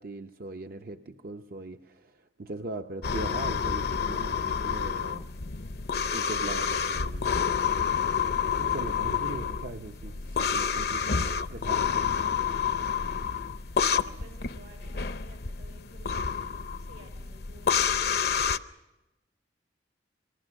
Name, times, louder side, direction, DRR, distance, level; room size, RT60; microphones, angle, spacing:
voice 1, 0.0-5.3 6.1-12.4, right 2 dB, 55° right, 5 dB, 0.7 m, -41 dB
sound 1, 3.0-18.6, left 6 dB, 65° left, 0.7 m, -29 dB
voice 2, 14.0-18.1, right 1 dB, 90° right, 4 dB, 6.1 m, -54 dB
27.0 x 20.5 x 6.3 m, 1.0 s
head